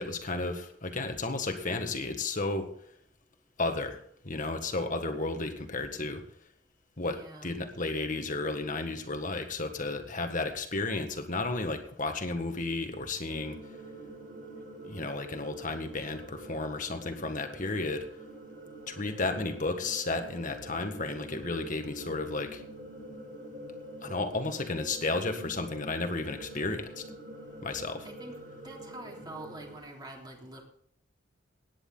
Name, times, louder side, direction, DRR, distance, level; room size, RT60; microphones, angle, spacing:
voice 1, 0.0-2.7 3.6-4.0 4.2-6.2 7.0-13.6 14.5-18.1 18.9-22.6 24.0-27.0 27.6-28.1, left 3 dB, 40° left, 6 dB, 1.7 m, -33 dB
voice 2, 7.0-7.5 28.0-28.3 28.6-30.6, right 1 dB, 20° right, 0 dB, 3.4 m, -45 dB
sound 1, 13.3-29.8, equal, 55° right, 5.9 m, -46 dB
17.5 x 9.9 x 4.0 m, 0.64 s
head